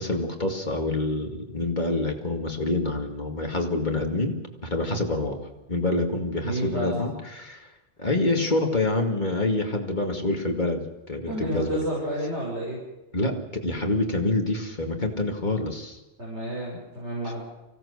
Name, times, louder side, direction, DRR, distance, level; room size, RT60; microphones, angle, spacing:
voice 1, 0.0-4.4 4.6-5.4 5.7-7.7 8.0-11.9 13.1-16.0, left 2 dB, 40° left, 3 dB, 2.4 m, -27 dB
voice 2, 6.4-7.1 11.3-12.8 16.2-17.4, right 1 dB, 70° right, -5 dB, 5.8 m, -30 dB
24.5 x 17.0 x 6.6 m, 1.0 s
omnidirectional pair, 1.2 m